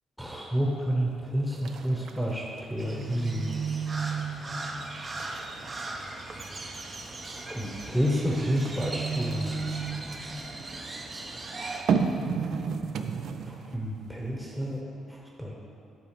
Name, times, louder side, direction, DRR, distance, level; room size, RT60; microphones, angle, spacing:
voice 1, 0.2-2.4 2.7-3.5 7.5-9.5 13.5-14.8 15.4-15.5, equal, ahead, -3 dB, 1.0 m, -29 dB
sound 1, 0.9-1.2 1.5-3.2 3.6-4.1 4.5-4.7 5.0-6.9 8.5-10.4 11.7-13.9 14.3-14.4, right 5 dB, 70° right, 0.4 m, -32 dB
Crow, 2.8-11.8, right 4 dB, 35° right, 0.8 m, -35 dB
9.0 x 3.8 x 6.7 m, 2.9 s
cardioid pair, 90°, 0 cm